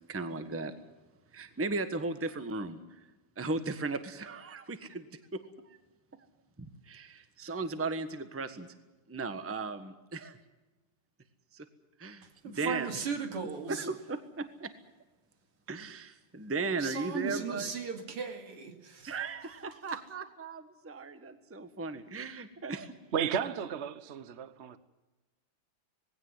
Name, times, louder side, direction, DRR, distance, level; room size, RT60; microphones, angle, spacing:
voice 1, 0.1-0.7 1.3-3.0 3.4-5.8 6.1-6.3 6.6-8.7 9.1-10.4 11.5-11.7 12.0-12.9 13.7-14.7 15.7-17.7 19.0-22.9, right 3 dB, 10° right, 10 dB, 1.0 m, -36 dB
voice 2, 12.2-13.9 16.8-19.2, right 6 dB, 85° right, 5 dB, 3.3 m, -37 dB
voice 3, 23.1-24.8, right 7 dB, 45° right, 13 dB, 0.9 m, -33 dB
20.0 x 17.0 x 9.7 m, 1.1 s
omnidirectional pair, 2.4 m